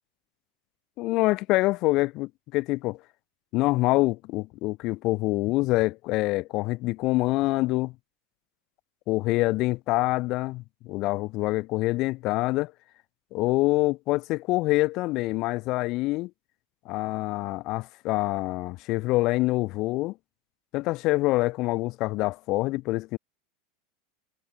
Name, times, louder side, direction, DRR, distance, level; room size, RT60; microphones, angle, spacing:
voice 1, 1.0-3.0 3.5-7.9 9.1-12.7 13.3-16.3 16.8-20.2 20.7-23.2, left 20 dB, 35° left, 4.7 m, -26 dB
supercardioid pair, 175°, 0 cm